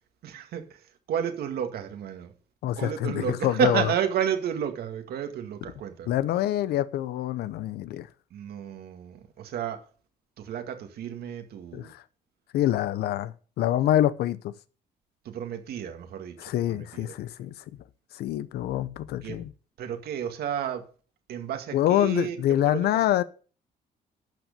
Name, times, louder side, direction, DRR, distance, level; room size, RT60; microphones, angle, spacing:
voice 1, 0.2-0.6 1.1-2.3 2.8-6.1 8.3-9.8 10.4-11.9 15.3-16.4 16.7-17.1 19.2-19.4 19.8-20.8 21.3-22.4 22.6-22.9, right 8 dB, 75° right, 2.0 m, -31 dB
voice 2, 2.6-3.9 6.1-8.1 11.7-12.0 12.5-14.5 16.4-17.5 18.1-19.5 21.7-23.2, left 12 dB, 85° left, 0.8 m, -26 dB
12.0 x 6.4 x 6.7 m
cardioid pair, 105°, 16 cm